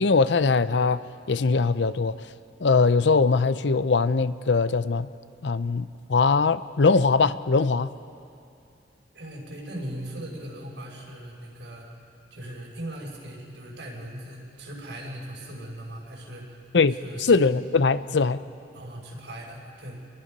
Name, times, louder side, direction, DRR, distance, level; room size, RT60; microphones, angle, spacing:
voice 1, 0.0-2.3 2.6-5.1 5.4-7.9 16.7-18.4, left 4 dB, 85° left, 0.6 m, -21 dB
voice 2, 9.1-11.9 12.3-16.6 17.0-17.3 18.7-20.0, right 1 dB, 80° right, 6.0 m, -39 dB
28.0 x 21.5 x 5.4 m
head